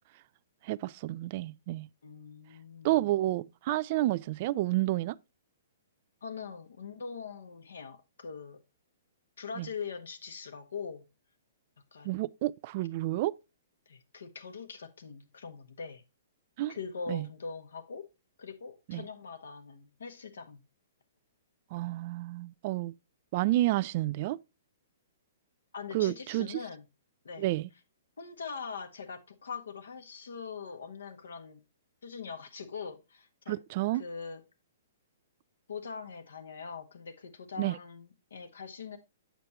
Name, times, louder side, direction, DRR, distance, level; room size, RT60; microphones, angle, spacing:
voice 1, 0.6-1.9 2.8-5.2 9.6-9.7 12.0-13.3 16.6-16.7 17.1-17.3 18.9-19.0 21.7-22.9 23.3-24.4 25.9-26.6 27.4-27.7 33.5-34.0 37.6-37.8, right 16 dB, 45° right, 0.3 m, -30 dB
voice 2, 2.0-3.0 6.2-8.6 9.4-11.0 11.9-12.2 13.9-16.0 16.7-18.1 18.4-20.6 25.7-26.8 27.2-27.5 28.2-31.6 32.0-33.6 33.9-34.4 35.7-39.0, left 5 dB, 70° left, 1.5 m, -42 dB
8.1 x 6.7 x 2.9 m
figure-of-eight pair, 120°, 0 cm